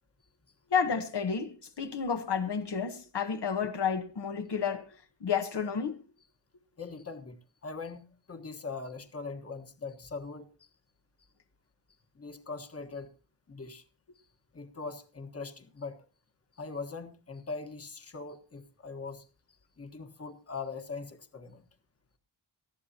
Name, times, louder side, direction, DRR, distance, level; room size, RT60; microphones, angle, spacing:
voice 1, 0.7-4.9 5.2-6.0, left 6 dB, 65° left, 1.2 m, -31 dB
voice 2, 6.8-10.7 12.1-13.1 13.5-13.8 14.5-16.0 16.5-21.7, left 4 dB, 30° left, 1.4 m, -41 dB
19.0 x 14.0 x 2.9 m
wide cardioid pair, 140°, 45 cm